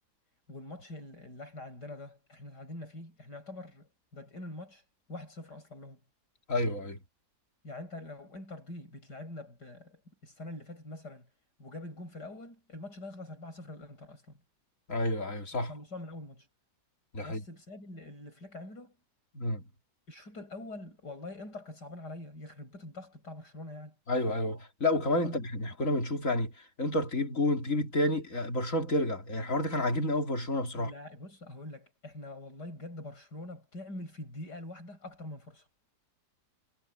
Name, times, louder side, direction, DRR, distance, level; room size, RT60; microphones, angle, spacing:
voice 1, 0.5-6.0 7.6-11.3 11.6-14.4 15.5-16.5 17.2-19.0 20.1-23.9 25.2-25.4 30.8-35.7, left 2 dB, 80° left, 8.6 m, -45 dB
voice 2, 6.5-7.0 14.9-15.7 17.1-17.4 19.3-19.6 24.1-26.5 26.8-30.9, left 1 dB, 50° left, 3.1 m, -30 dB
omnidirectional pair, 1.8 m